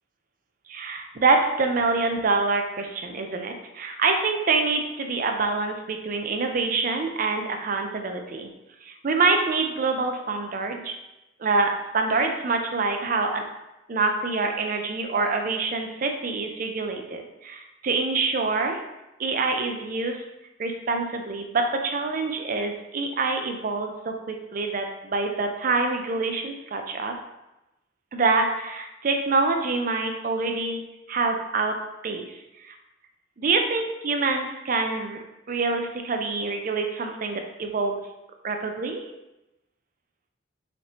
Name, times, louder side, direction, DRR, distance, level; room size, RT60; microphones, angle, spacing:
voice 1, 0.7-8.5 8.8-10.9 11.4-13.4 13.9-18.8 19.2-20.2 20.6-27.1 28.1-30.8 31.1-31.8 32.0-32.7 33.4-35.2 35.5-38.0 38.4-39.1, right 3 dB, 45° right, 4 dB, 0.4 m, -26 dB
5.0 x 2.8 x 2.9 m, 0.95 s
head